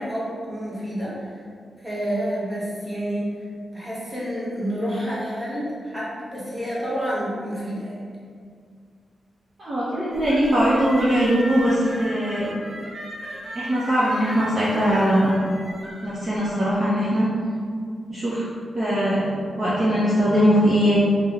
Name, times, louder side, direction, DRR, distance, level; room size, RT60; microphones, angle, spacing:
voice 1, 0.0-1.4 1.8-3.3 3.7-8.0, equal, 15° right, -8 dB, 1.0 m, -29 dB
voice 2, 9.6-12.5 13.5-15.3 16.0-17.3 18.1-18.5 18.7-19.2 19.6-21.0, equal, 30° right, -10 dB, 0.7 m, -20 dB
sound 1, 10.1-16.8, equal, 55° right, 1.0 m, -37 dB
5.4 x 2.1 x 3.5 m, 2.1 s
wide cardioid pair, 180°, 0 cm